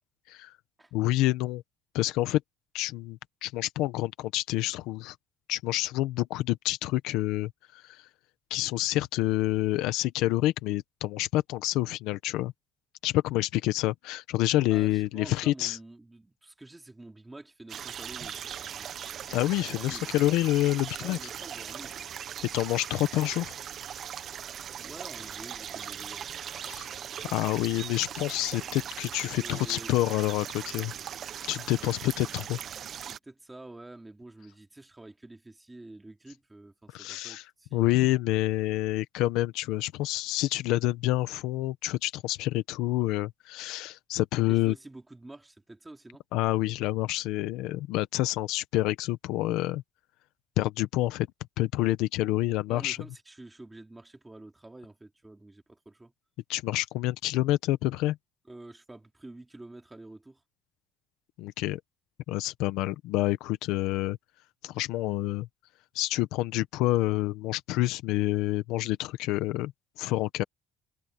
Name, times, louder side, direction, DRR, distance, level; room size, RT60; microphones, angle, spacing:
voice 1, 0.9-1.6 1.9-2.4 2.7-5.1 5.5-8.0 8.5-12.5 13.0-15.8 19.3-21.2 22.5-23.5 26.7-26.9 27.3-30.9 31.5-32.6 36.9-37.4 37.7-44.7 46.3-49.8 50.6-51.3 51.6-53.0 56.5-58.2 61.4-61.8 62.3-64.2 64.6-65.5 65.9-69.7 70.0-70.4, left 16 dB, 80° left, 1.1 m, -28 dB
voice 2, 14.7-18.9 19.7-20.1 21.0-22.0 24.8-26.3 29.4-29.9 32.9-38.2 44.5-46.2 52.7-56.1 58.5-60.4, right 2 dB, 10° right, 3.1 m, -48 dB
sound 1, 17.7-33.2, right 9 dB, 40° right, 1.2 m, -39 dB
cardioid pair, 145°, 0 cm